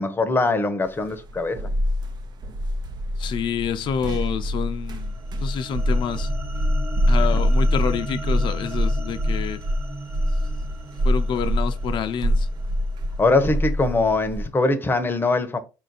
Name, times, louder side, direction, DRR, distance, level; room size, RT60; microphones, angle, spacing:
voice 1, 0.0-1.6 13.2-15.6, left 3 dB, 20° left, 0.8 m, -22 dB
sound 1, 1.0-14.5, equal, 45° right, 0.7 m, -24 dB
voice 2, 3.2-6.3 7.1-9.6 11.0-12.5, left 7 dB, 55° left, 0.6 m, -28 dB
sound 2, 4.9-13.3, right 3 dB, 20° right, 1.2 m, -39 dB
4.1 x 2.6 x 4.0 m
supercardioid pair, 70°, 10 cm